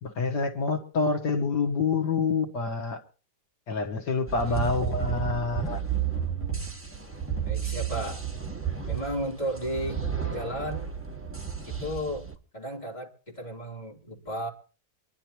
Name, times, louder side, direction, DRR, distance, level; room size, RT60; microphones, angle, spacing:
voice 1, 0.0-3.0 3.7-5.8, left 4 dB, 70° left, 2.0 m, -27 dB
sound 1, 4.3-12.3, right 8 dB, 10° right, 1.4 m, -32 dB
voice 2, 5.1-5.4 7.4-8.2 8.9-10.9 11.7-12.3 12.5-14.5, equal, 25° left, 3.6 m, -34 dB
25.0 x 11.5 x 3.0 m
omnidirectional pair, 1.9 m